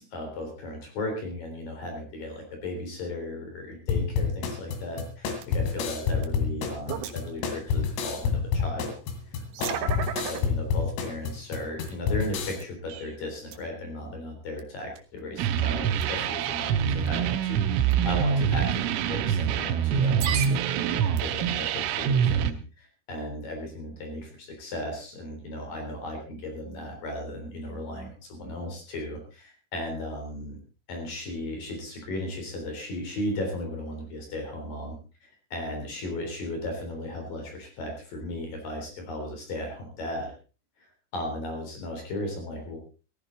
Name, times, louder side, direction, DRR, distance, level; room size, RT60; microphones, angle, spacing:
voice 1, 0.0-8.9 9.3-20.6 20.9-30.6 30.9-35.0 35.2-40.3 40.8-40.9 41.1-42.8, left 1 dB, 45° left, 3 dB, 4.9 m, -36 dB
sound 1, 3.9-12.6, left 6 dB, 80° left, 4.9 m, -28 dB
sound 2, 5.4-5.5 6.1-7.4 8.1-8.2 9.2-10.4 11.0-11.1 11.8-11.9 12.4-13.2 13.5-13.6 14.6-14.7 15.0-15.2 16.0-16.2 17.0-17.3 17.8-17.9 18.9-19.0 20.0-21.5, right 9 dB, 65° right, 2.5 m, -34 dB
sound 3, 15.4-22.5, right 8 dB, 85° right, 3.6 m, -25 dB
17.0 x 14.5 x 3.9 m, 0.35 s
omnidirectional pair, 5.9 m